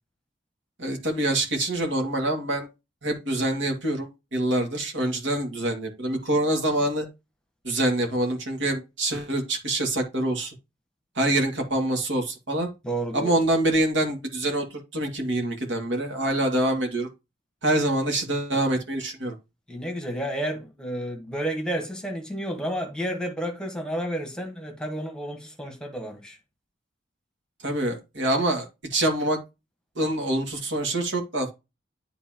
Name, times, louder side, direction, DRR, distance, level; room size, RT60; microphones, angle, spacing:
voice 1, 0.8-2.7 3.0-7.1 7.6-10.5 11.2-12.7 13.1-17.1 17.6-19.4 27.6-29.4 30.0-31.5, right 1 dB, 65° right, 2.2 m, -25 dB
voice 2, 12.8-13.3 19.7-26.4, right 1 dB, 5° left, 1.3 m, -31 dB
11.0 x 4.2 x 2.9 m
head